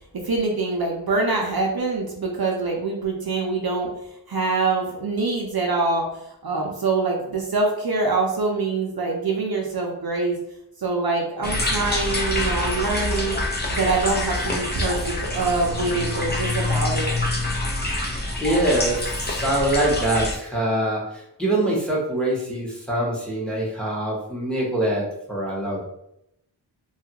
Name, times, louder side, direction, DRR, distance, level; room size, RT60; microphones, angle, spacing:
voice 1, 0.2-3.9 4.3-6.1 6.4-10.4 10.8-13.4 13.7-17.1, right 3 dB, 55° right, -1 dB, 0.6 m, -24 dB
sound 1, 11.4-20.4, left 1 dB, 25° left, 0.6 m, -26 dB
voice 2, 18.4-25.9, right 1 dB, ahead, -4 dB, 0.9 m, -24 dB
2.8 x 2.4 x 2.8 m, 0.79 s
wide cardioid pair, 65°, 44 cm